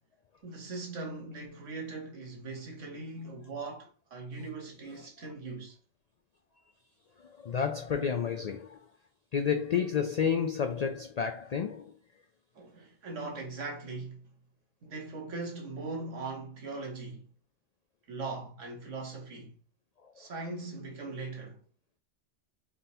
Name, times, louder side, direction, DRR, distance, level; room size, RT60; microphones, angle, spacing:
voice 1, 0.4-5.8 12.5-14.3 14.8-17.3 18.1-19.6 20.2-21.6, right 3 dB, 85° right, 1.6 m, -40 dB
voice 2, 7.2-8.8 9.3-11.9 20.0-20.1, left 7 dB, 80° left, 0.3 m, -30 dB
3.9 x 3.7 x 2.7 m
omnidirectional pair, 1.2 m